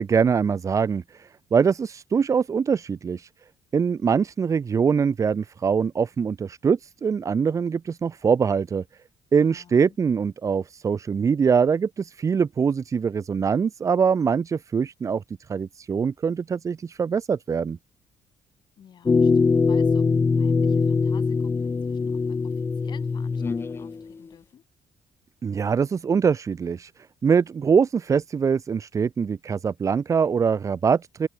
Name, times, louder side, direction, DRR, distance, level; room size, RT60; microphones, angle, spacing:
voice 1, 0.0-3.3 3.7-8.8 9.3-17.8 25.4-26.9 27.2-31.3, right 6 dB, 35° right, 0.6 m, -23 dB
voice 2, 9.4-10.0 18.8-20.1 20.3-24.6, left 8 dB, 55° left, 3.2 m, -51 dB
sound 1, 19.1-24.0, left 4 dB, 25° left, 0.5 m, -22 dB
cardioid pair, 80°, 9 cm